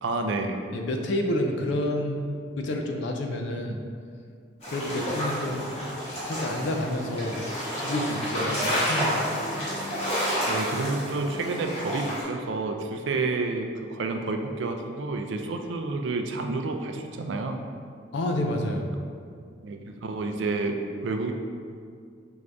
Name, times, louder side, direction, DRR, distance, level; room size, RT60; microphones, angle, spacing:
voice 1, 0.0-0.6 10.5-17.6 19.6-21.3, right 3 dB, 75° right, 4 dB, 0.4 m, -29 dB
voice 2, 0.7-2.2 2.6-3.8 4.7-5.7 6.2-9.3 18.1-18.9, left 1 dB, 70° left, 3 dB, 0.4 m, -29 dB
sound 1, 4.6-12.2, equal, 30° left, 1.3 m, -30 dB
4.7 x 2.6 x 3.3 m, 2.2 s
head